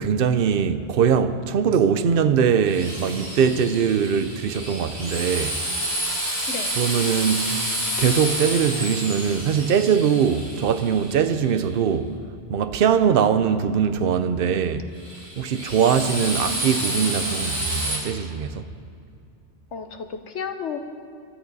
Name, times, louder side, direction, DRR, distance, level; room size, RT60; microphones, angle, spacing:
voice 1, 0.0-5.6 6.8-7.7 8.0-12.1 12.5-14.9 15.4-18.7, right 7 dB, 60° right, 0.8 m, -21 dB
Drill, 2.6-11.6 15.0-18.0, right 1 dB, 35° right, 3.6 m, -29 dB
voice 2, 16.0-16.7 19.7-20.8, left 6 dB, 85° left, 1.3 m, -34 dB
23.5 x 13.5 x 4.1 m
omnidirectional pair, 1.2 m